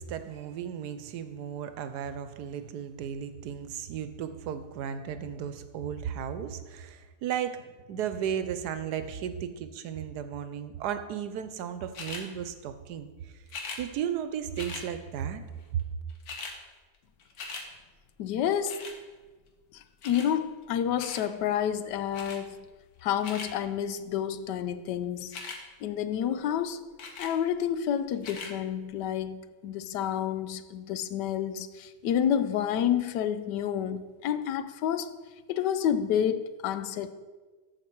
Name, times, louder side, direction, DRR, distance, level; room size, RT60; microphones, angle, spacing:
voice 1, 0.0-13.3 13.8-15.4 15.7-15.8, right 8 dB, 75° right, 1.2 m, -35 dB
sound 1, 11.9-12.3 13.5-13.8 14.5-14.9 15.8-15.9 16.1-16.6 16.9-17.7 18.7-19.0 20.0-20.3 21.0-21.3 22.1-22.4 23.0-23.5 25.2-25.6 27.0-27.3 28.2-28.5 29.2-29.3, left 4 dB, 65° left, 1.6 m, -40 dB
voice 2, 18.2-18.8 19.7-22.6 23.0-25.4 25.8-26.8 27.2-35.1 35.5-37.1, left 9 dB, 90° left, 1.2 m, -29 dB
13.5 x 4.7 x 4.5 m
omnidirectional pair, 1.8 m